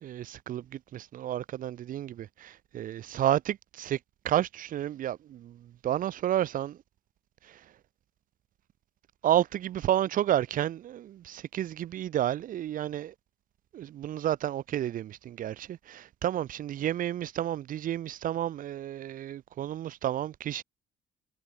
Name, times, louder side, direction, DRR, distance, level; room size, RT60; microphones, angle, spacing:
voice 1, 0.0-4.0 4.2-6.8 7.4-7.6 9.2-13.1 13.7-20.6, right 11 dB, 55° right, 0.8 m, -31 dB
cardioid pair, 110°, 17 cm